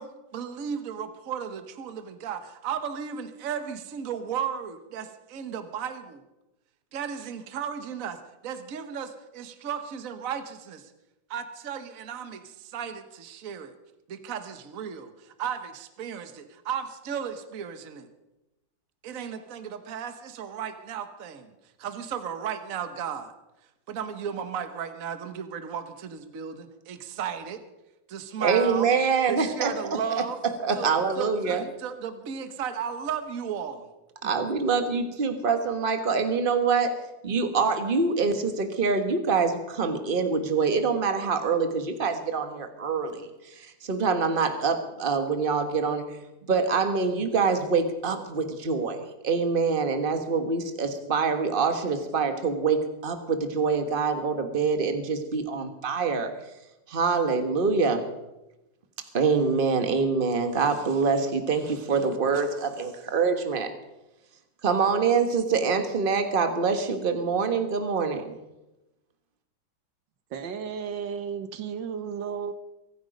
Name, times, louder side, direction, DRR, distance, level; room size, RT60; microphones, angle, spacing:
voice 1, 0.0-6.2 6.9-10.9 11.3-13.7 14.1-18.1 19.0-23.3 23.6-27.6 28.1-28.9 29.3-30.4 30.7-30.9 31.2-33.9, right 7 dB, 50° right, 9 dB, 1.4 m, -35 dB
voice 2, 28.4-29.7 30.6-31.6 34.2-36.9 37.2-56.5 56.9-58.1 59.1-63.7 64.6-68.4, right 5 dB, 30° right, 7 dB, 1.5 m, -25 dB
voice 3, 70.3-72.5, right 7 dB, 80° right, 9 dB, 1.8 m, -33 dB
24.0 x 9.3 x 5.2 m, 0.96 s
omnidirectional pair, 2.0 m